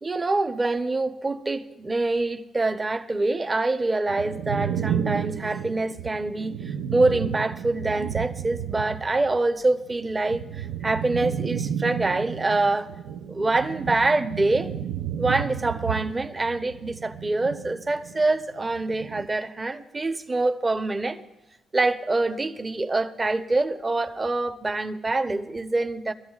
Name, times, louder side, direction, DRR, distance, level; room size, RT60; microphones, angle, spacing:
voice 1, 0.0-12.9 13.3-14.7 15.2-21.2 21.7-26.1, right 2 dB, 25° right, 0.8 m, -25 dB
sound 1, 4.1-9.4 9.7-18.2 18.6-19.3, right 9 dB, 90° right, 0.4 m, -32 dB
23.0 x 13.0 x 2.4 m
cardioid pair, 90°, 0 cm